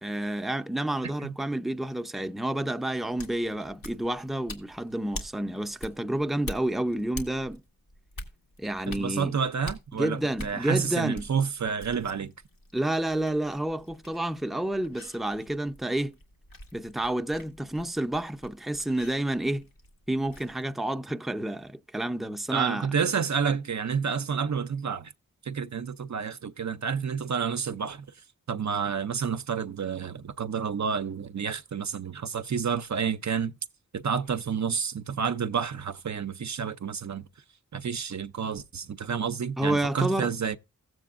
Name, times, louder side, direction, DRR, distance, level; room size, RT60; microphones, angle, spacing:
voice 1, 0.0-7.6 8.6-9.3 10.0-11.2 12.7-16.2 16.7-19.7 20.1-22.9 39.6-40.3, right 1 dB, ahead, 0.6 m, -29 dB
voice 2, 1.0-1.3 8.9-12.3 22.5-25.1 25.4-28.1 28.5-33.5 33.9-37.3 37.7-40.6, right 6 dB, 55° right, 0.6 m, -29 dB
sound 1, 3.2-20.6, left 1 dB, 80° left, 2.0 m, -46 dB
16.0 x 7.7 x 2.5 m
cardioid pair, 50°, 34 cm